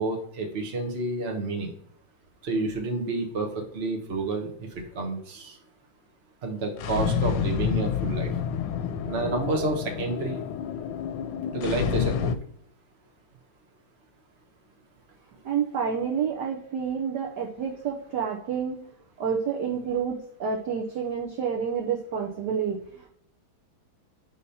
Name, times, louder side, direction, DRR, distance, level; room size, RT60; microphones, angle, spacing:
voice 1, 0.0-1.7 2.4-5.6 6.4-8.3 9.0-10.4 11.5-12.3, right 2 dB, 35° right, 2 dB, 1.1 m, -29 dB
sound 1, 6.7-12.4, left 7 dB, 75° left, 1.4 m, -29 dB
voice 2, 15.4-18.8 19.2-23.1, right 7 dB, 65° right, 0 dB, 1.2 m, -29 dB
5.0 x 4.2 x 5.5 m, 0.65 s
omnidirectional pair, 2.4 m